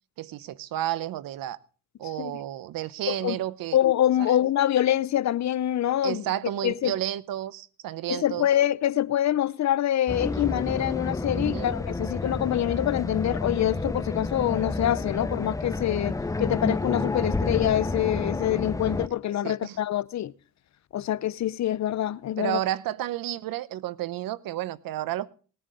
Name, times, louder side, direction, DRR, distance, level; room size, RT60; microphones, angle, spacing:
voice 1, 0.2-1.6 2.0-3.8 4.2-4.3 6.0-8.5 11.3-11.7 19.4-19.8 22.4-25.3, right 13 dB, 80° right, 0.8 m, -31 dB
voice 2, 3.1-3.4 3.7-6.2 6.6-6.9 8.1-20.3 20.9-22.6, left 12 dB, 55° left, 0.6 m, -25 dB
sound 1, 10.1-19.1, left 3 dB, 10° left, 0.5 m, -30 dB
19.0 x 9.4 x 3.7 m
cardioid pair, 90°, 34 cm